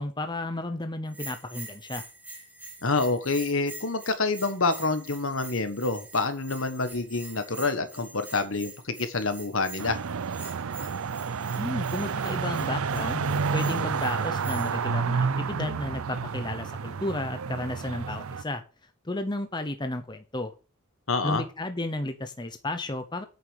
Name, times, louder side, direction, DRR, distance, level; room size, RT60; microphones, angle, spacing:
voice 1, 0.0-2.1 11.5-18.6 19.0-20.5 21.2-23.2, left 1 dB, 20° left, 8 dB, 0.8 m, -33 dB
Bell, 1.1-14.8, right 2 dB, 10° right, 2.8 m, -45 dB
voice 2, 2.8-10.0 21.1-21.4, left 3 dB, 65° left, 10 dB, 1.5 m, -27 dB
sound 1, 9.8-18.4, right 5 dB, 75° right, 0.5 m, -30 dB
9.0 x 6.7 x 6.5 m, 0.33 s
head